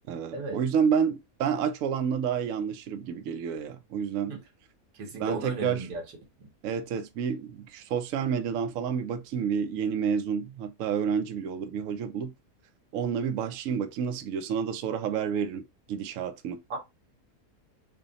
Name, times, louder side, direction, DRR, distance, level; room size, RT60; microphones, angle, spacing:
voice 1, 0.1-4.4 5.2-5.9 6.6-12.3 12.9-15.6 15.9-16.6, right 7 dB, 65° right, 0.9 m, -29 dB
voice 2, 4.9-6.0 6.4-6.5 16.7-16.8, right 3 dB, 90° right, 1.7 m, -35 dB
3.4 x 2.2 x 3.9 m
omnidirectional pair, 1.7 m